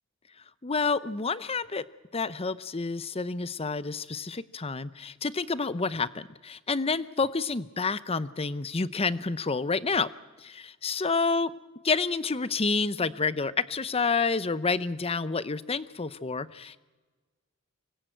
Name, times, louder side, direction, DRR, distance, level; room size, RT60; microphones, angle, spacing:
voice 1, 0.6-1.8 2.1-10.1 10.4-11.5 11.8-16.8, left 4 dB, 30° left, 16 dB, 0.7 m, -29 dB
25.0 x 20.0 x 9.1 m, 1.3 s
head